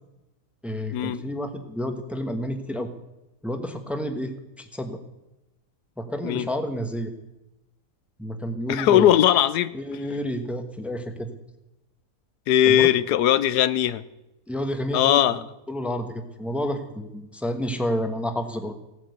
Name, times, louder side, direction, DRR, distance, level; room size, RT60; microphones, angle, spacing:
voice 1, 0.6-2.9 3.4-5.0 6.0-7.1 8.2-9.2 9.7-11.3 12.7-12.9 14.5-15.2 15.7-18.7, equal, ahead, 7 dB, 1.1 m, -30 dB
voice 2, 8.7-9.7 12.5-14.0 14.9-15.4, left 11 dB, 90° left, 16 dB, 1.3 m, -19 dB
17.0 x 9.3 x 8.1 m, 0.97 s
omnidirectional pair, 1.7 m